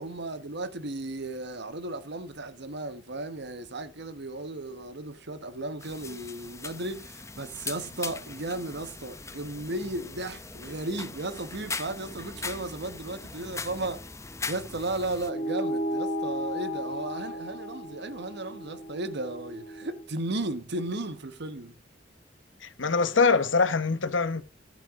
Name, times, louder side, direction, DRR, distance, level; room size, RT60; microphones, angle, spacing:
voice 1, 0.0-14.0 14.5-21.7, right 2 dB, 65° right, 1.2 m, -35 dB
sound 1, 5.8-15.3, left 4 dB, 15° left, 0.8 m, -40 dB
sound 2, 15.3-20.1, equal, 50° left, 1.7 m, -34 dB
voice 2, 22.6-24.4, left 4 dB, 75° left, 1.0 m, -24 dB
14.5 x 7.5 x 3.7 m
head